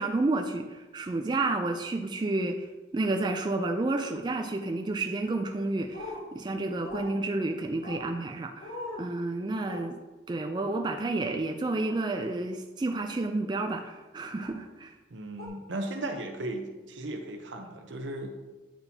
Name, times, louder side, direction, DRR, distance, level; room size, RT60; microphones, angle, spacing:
voice 1, 0.0-2.7 2.9-10.0 10.3-14.9, right 2 dB, 25° right, 5 dB, 0.3 m, -30 dB
sound 1, 5.9-6.2 6.8-7.1 7.8-8.1 8.6-9.0 9.6-9.8 11.8-12.0 12.9-13.2 14.4-14.6 15.4-15.5, left 2 dB, 55° left, 1.1 m, -40 dB
voice 2, 15.1-18.3, right 1 dB, 90° right, 4 dB, 0.8 m, -36 dB
8.7 x 4.4 x 2.7 m, 1.2 s
head